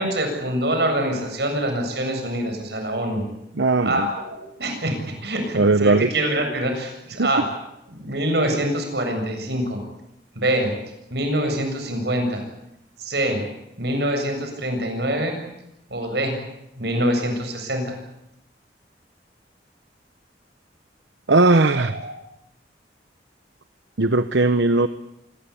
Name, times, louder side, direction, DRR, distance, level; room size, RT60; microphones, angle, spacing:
voice 1, 0.0-3.3 3.8-7.4 7.9-9.8 10.3-10.7 11.1-12.4 13.0-13.4 13.8-15.3 15.9-16.4 16.8-18.0 21.7-22.1, right 1 dB, 65° right, 5 dB, 7.7 m, -25 dB
voice 2, 3.6-4.1 5.6-6.1 7.2-7.3 21.3-21.9 24.0-24.9, right 2 dB, 90° right, 11 dB, 1.0 m, -18 dB
26.0 x 20.5 x 8.6 m, 0.83 s
head